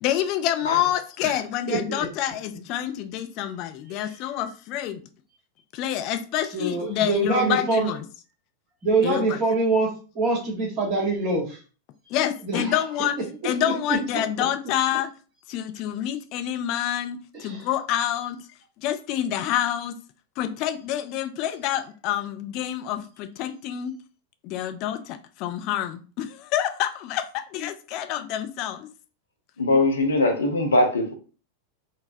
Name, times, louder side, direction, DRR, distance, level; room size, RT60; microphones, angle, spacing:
voice 1, 0.0-5.0 5.7-8.0 9.0-9.4 12.1-13.1 13.4-15.1 15.5-18.4 18.8-20.0 20.4-23.9 24.4-28.9, left 11 dB, 40° left, 8 dB, 0.4 m, -27 dB
voice 2, 1.7-2.0 4.1-4.2 6.5-7.9 8.8-9.9 10.1-11.6 12.4-12.8 17.3-17.7, right 3 dB, 35° right, -1 dB, 1.3 m, -24 dB
voice 3, 29.6-31.1, left 2 dB, 70° left, 4 dB, 0.7 m, -21 dB
4.0 x 2.1 x 2.6 m, 0.37 s
figure-of-eight pair, 90°, 0 cm